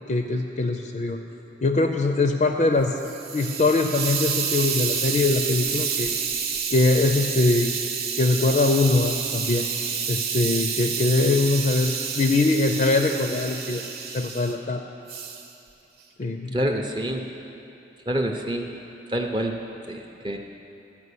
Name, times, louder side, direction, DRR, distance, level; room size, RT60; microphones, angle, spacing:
voice 1, 0.1-1.2 1.6-3.0 3.3-6.1 6.7-7.7 8.2-9.7 10.1-13.9 14.1-14.8 16.2-16.6, left 2 dB, 40° left, 5 dB, 0.4 m, -22 dB
Hiss, 2.8-14.5 15.1-15.5, right 6 dB, 55° right, 0.9 m, -29 dB
voice 2, 16.5-17.3 18.1-18.7 19.1-19.6 19.8-20.4, right 1 dB, 25° right, 2 dB, 0.5 m, -27 dB
12.5 x 4.8 x 8.3 m, 2.8 s
head